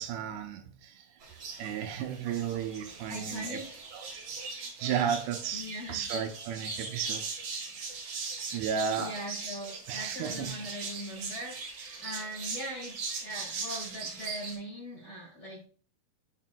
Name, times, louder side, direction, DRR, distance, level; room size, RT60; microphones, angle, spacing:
voice 1, 0.0-3.6 3.9-4.0 4.8-7.2 7.8-7.9 8.5-9.1 9.9-10.5, right 8 dB, 80° right, 2.8 m, -34 dB
sound 1, 1.2-14.5, right 4 dB, 60° right, 1.5 m, -40 dB
voice 2, 3.1-3.8 5.5-6.1 9.0-15.7, equal, 80° left, 0.9 m, -41 dB
7.6 x 7.1 x 2.2 m
omnidirectional pair, 4.9 m